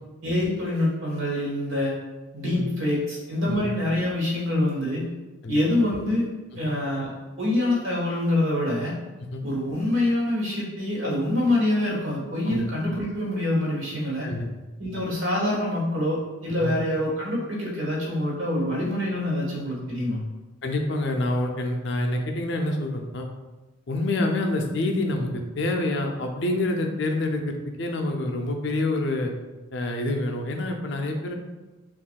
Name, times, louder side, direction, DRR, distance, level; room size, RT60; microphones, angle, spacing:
voice 1, 0.2-1.9 2.3-5.1 5.5-6.3 6.6-7.1 7.4-8.9 9.4-14.3 14.8-20.2, left 1 dB, 70° right, -4 dB, 1.3 m, -25 dB
voice 2, 20.6-23.3 23.9-29.3 29.7-31.3, left 2 dB, 55° left, 3 dB, 0.4 m, -27 dB
6.1 x 2.4 x 2.3 m, 1.1 s
head